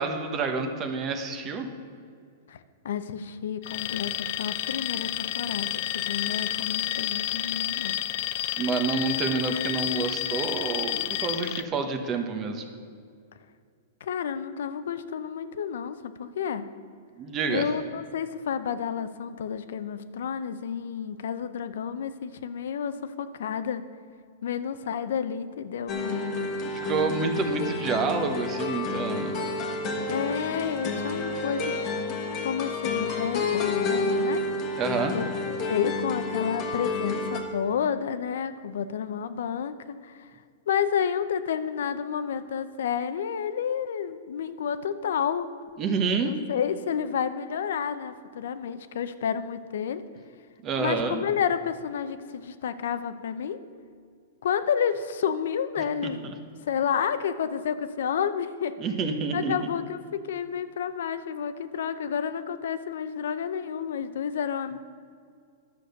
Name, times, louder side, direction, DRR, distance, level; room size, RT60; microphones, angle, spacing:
voice 1, 0.0-1.7 8.6-12.7 17.2-17.7 26.6-29.4 34.8-35.2 45.8-46.3 50.6-51.2 56.0-56.1 58.8-59.5, right 4 dB, 20° right, 6 dB, 0.9 m, -28 dB
voice 2, 2.8-8.0 14.0-16.6 17.5-23.8 24.4-26.5 30.1-31.9 32.4-34.4 35.1-40.3 40.7-45.5 46.2-50.0 50.8-53.6 54.4-56.3 56.7-58.7 59.3-64.8, left 7 dB, 75° left, 12 dB, 0.6 m, -30 dB
Alarm, 3.6-11.6, left 14 dB, 40° left, 0.3 m, -30 dB
sound 1, 25.9-37.4, left 3 dB, 25° left, 1.2 m, -30 dB
11.0 x 6.8 x 6.6 m, 2.2 s
supercardioid pair, 170°, 0 cm